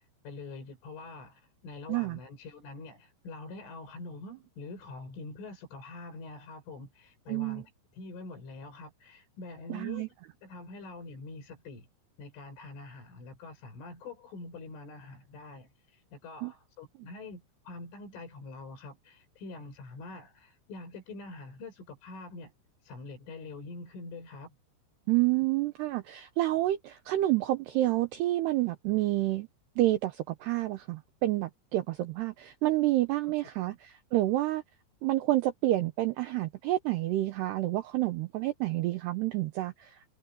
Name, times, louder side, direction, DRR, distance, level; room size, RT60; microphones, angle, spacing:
voice 1, 0.0-7.6 7.9-10.1 10.4-11.9 12.2-22.5 22.8-24.5 33.6-33.8, left 3 dB, 70° left, 8.4 m, -45 dB
voice 2, 1.9-2.2 7.3-7.6 9.7-10.1 16.4-16.5 25.1-29.5 29.8-34.6 35.0-40.0, right 16 dB, 85° right, 2.3 m, -29 dB
omnidirectional pair, 5.9 m